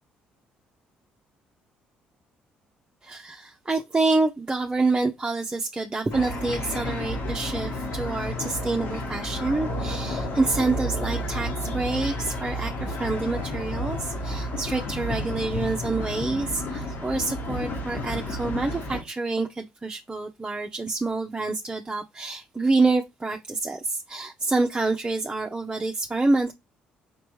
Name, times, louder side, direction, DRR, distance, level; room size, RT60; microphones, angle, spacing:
voice 1, 3.0-26.5, right 3 dB, 20° right, 0.7 m, -27 dB
sound 1, 6.1-19.0, left 1 dB, 65° left, 2.2 m, -31 dB
5.1 x 3.2 x 3.1 m
hypercardioid pair, 60°, 4 cm